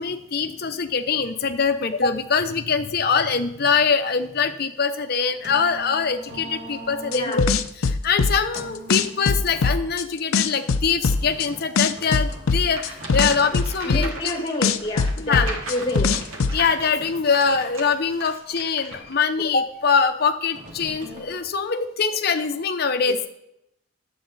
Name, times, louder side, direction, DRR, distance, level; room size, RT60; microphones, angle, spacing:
voice 1, 0.0-7.5 7.8-14.1 15.2-15.5 16.5-23.2, left 5 dB, 50° left, 7 dB, 0.7 m, -23 dB
sound 1, 5.0-21.4, equal, 40° right, 2.0 m, -44 dB
sound 2, 7.1-8.6 8.9-10.0 10.3-11.5 11.8-14.3 14.6-16.5, left 4 dB, 85° left, 0.5 m, -21 dB
voice 2, 7.1-7.4 13.8-16.2 23.1-23.2, left 1 dB, 25° left, 3 dB, 1.4 m, -28 dB
sound 3, 12.7-19.1, right 2 dB, 80° right, 1.7 m, -38 dB
9.8 x 7.7 x 4.1 m, 0.81 s
head